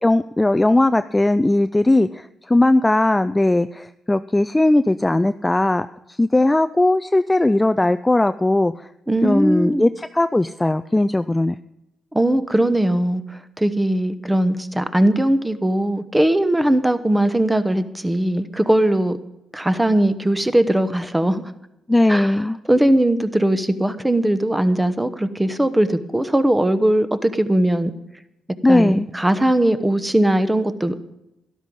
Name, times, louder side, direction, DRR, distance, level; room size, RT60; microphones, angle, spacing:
voice 1, 0.0-5.9 6.2-8.9 9.2-11.6 21.9-22.6 28.6-29.1, left 2 dB, 15° left, 11 dB, 0.3 m, -18 dB
voice 2, 9.1-9.9 12.1-19.2 19.5-21.4 22.1-27.9 28.7-31.0, right 1 dB, 10° right, 12 dB, 1.0 m, -19 dB
12.5 x 11.5 x 5.4 m, 0.88 s
cardioid pair, 90°, 0 cm